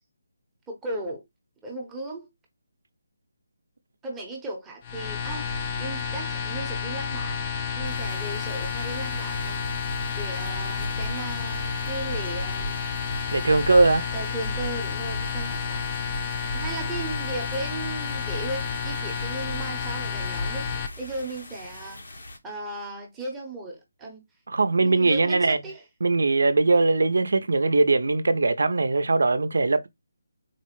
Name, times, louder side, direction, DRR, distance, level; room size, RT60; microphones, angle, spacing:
voice 1, 0.7-1.2 1.6-2.3 4.0-7.4 7.7-9.7 10.1-12.8 14.1-16.1 16.5-22.0 22.4-24.2 24.8-25.8, right 2 dB, 10° right, 0.7 m, -36 dB
sound 1, 4.8-20.9, left 5 dB, 25° left, 0.4 m, -30 dB
sound 2, 7.8-22.4, left 2 dB, 65° left, 1.0 m, -43 dB
voice 2, 13.3-14.1 24.5-25.6 26.0-29.9, right 3 dB, 75° right, 0.5 m, -21 dB
4.1 x 2.1 x 2.9 m
hypercardioid pair, 165°, 0 cm